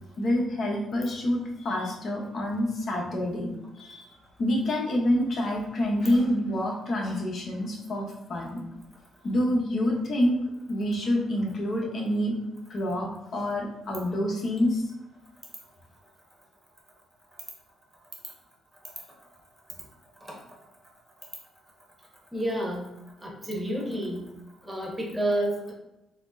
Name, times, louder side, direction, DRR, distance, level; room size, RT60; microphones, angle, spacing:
voice 1, 0.2-4.1 4.4-8.6 9.2-10.4 10.7-12.3 12.7-14.8, left 1 dB, 55° left, 0 dB, 0.8 m, -27 dB
voice 2, 22.3-22.9 23.2-24.2 24.6-25.7, right 1 dB, 15° right, -1 dB, 0.9 m, -30 dB
4.1 x 2.0 x 2.6 m, 0.93 s
cardioid pair, 90°, 0 cm